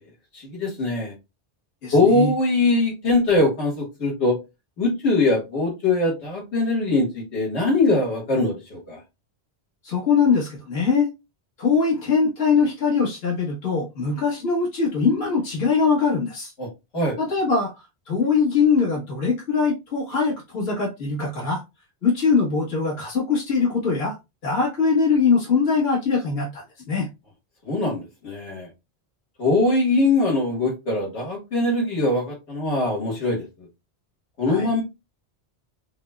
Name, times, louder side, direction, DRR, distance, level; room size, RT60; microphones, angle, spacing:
voice 1, 0.3-1.1 1.9-4.4 4.8-9.0 16.6-16.7 16.9-17.2 27.6-28.7 29.4-33.4 34.4-34.8, left 2 dB, 85° left, -2 dB, 1.8 m, -22 dB
voice 2, 1.8-2.3 9.8-11.1 11.6-16.5 17.2-17.7 18.1-21.6 22.0-24.2 24.4-27.1 34.5-34.7, left 5 dB, 65° left, -4 dB, 1.5 m, -22 dB
5.4 x 2.1 x 2.2 m, 0.24 s
omnidirectional pair, 1.1 m